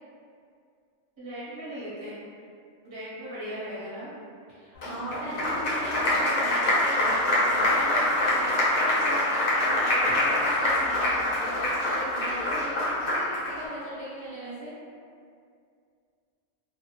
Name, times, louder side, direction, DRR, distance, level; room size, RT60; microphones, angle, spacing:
voice 1, 1.2-2.2 2.8-4.1, equal, 25° right, -11 dB, 0.8 m, -38 dB
voice 2, 4.5-14.7, right 1 dB, 65° right, -10 dB, 0.8 m, -38 dB
Applause, 4.8-13.5, left 1 dB, 55° left, 0.4 m, -25 dB
2.2 x 2.0 x 2.9 m, 2.3 s
omnidirectional pair, 1.3 m